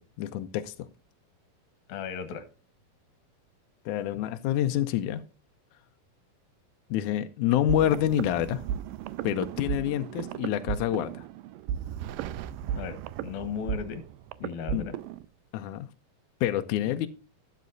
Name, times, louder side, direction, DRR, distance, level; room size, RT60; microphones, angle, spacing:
voice 1, 0.2-0.7 3.9-5.2 6.9-8.6 9.2-11.2 14.7-14.9 15.5-15.9 16.4-17.1, left 12 dB, 90° left, 1.8 m, -27 dB
voice 2, 1.9-2.5 12.8-13.0 13.2-14.0 14.4-15.0, left 7 dB, 65° left, 2.5 m, -35 dB
sound 1, 7.7-15.3, right 10 dB, 80° right, 2.2 m, -35 dB
12.5 x 9.4 x 2.6 m
omnidirectional pair, 4.2 m